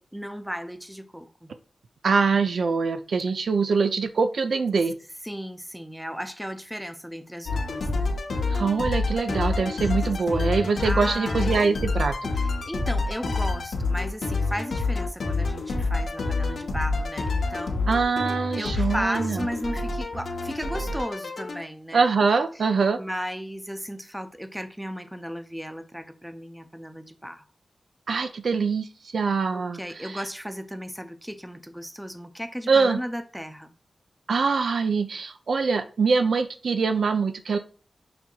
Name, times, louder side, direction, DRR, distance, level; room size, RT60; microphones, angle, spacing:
voice 1, 0.1-1.5 5.2-8.1 10.3-11.6 12.3-17.9 18.5-22.1 22.5-22.7 23.0-27.5 29.5-33.7, equal, 5° right, 0.4 m, -35 dB
voice 2, 2.0-4.9 8.5-12.1 17.9-19.4 21.9-23.0 28.1-28.9 29.1-29.8 32.7-33.0 34.3-37.6, right 4 dB, 80° right, 0.3 m, -23 dB
sound 1, 7.5-21.6, left 3 dB, 85° left, 0.7 m, -27 dB
5.8 x 2.7 x 2.3 m
wide cardioid pair, 75°, 0 cm